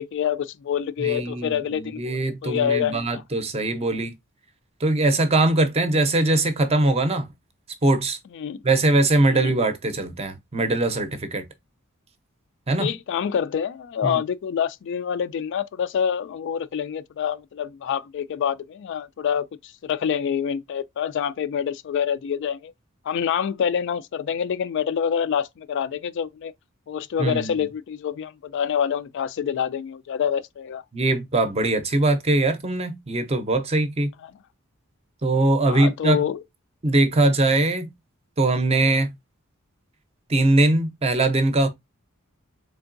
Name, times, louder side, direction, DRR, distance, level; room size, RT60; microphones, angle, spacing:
voice 1, 0.0-3.2 8.3-8.6 9.3-9.6 12.8-22.7 23.0-26.5 26.9-30.8 34.2-34.3 35.7-36.4, left 8 dB, 60° left, 0.3 m, -26 dB
voice 2, 1.0-4.1 4.8-7.3 7.8-8.2 8.6-11.4 12.7-12.9 14.0-14.2 27.2-27.5 30.9-34.1 35.2-36.2 36.8-37.9 38.4-39.1 40.3-41.7, right 2 dB, 30° right, 0.6 m, -21 dB
3.7 x 3.5 x 2.5 m
head